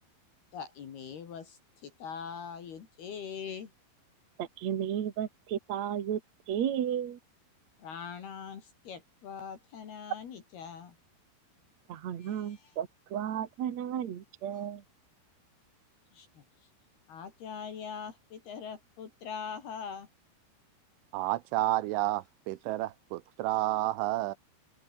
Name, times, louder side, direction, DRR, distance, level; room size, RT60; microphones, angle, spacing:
voice 1, 0.5-3.7 7.8-11.0 12.2-12.8 14.5-14.6 16.1-16.4 17.1-20.1, left 6 dB, 60° left, 4.5 m, -42 dB
voice 2, 4.4-6.2 6.5-7.2 11.9-14.8, right 9 dB, 55° right, 2.0 m, -33 dB
voice 3, 21.1-24.4, right 17 dB, 90° right, 3.5 m, -30 dB
omnidirectional pair, 5.4 m